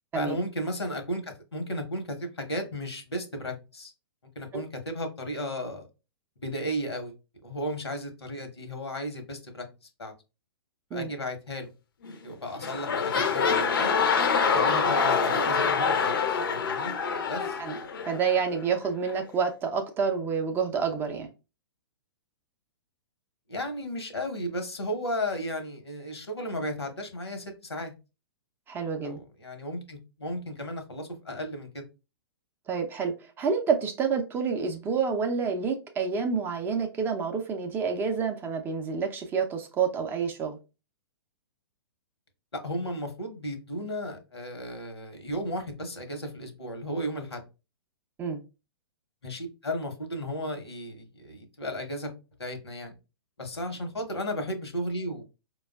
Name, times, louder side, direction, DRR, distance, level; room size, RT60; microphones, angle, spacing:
voice 1, 0.1-3.9 4.3-5.9 6.4-7.1 7.4-9.7 10.0-10.1 10.9-11.7 12.2-14.0 14.5-17.0 17.2-17.6 23.5-27.9 29.0-31.9 42.5-47.4 49.2-52.1 52.4-52.9 53.4-55.2, equal, 80° left, 6 dB, 1.0 m, -34 dB
sound 1, 12.0-12.3 12.6-18.4 19.1-19.2, left 5 dB, 55° left, 0.6 m, -26 dB
voice 2, 18.1-21.3 28.7-29.2 32.7-40.6 48.2-48.4, right 6 dB, 15° right, 4 dB, 0.4 m, -28 dB
4.8 x 2.2 x 2.2 m, 0.29 s
figure-of-eight pair, 115°, 14 cm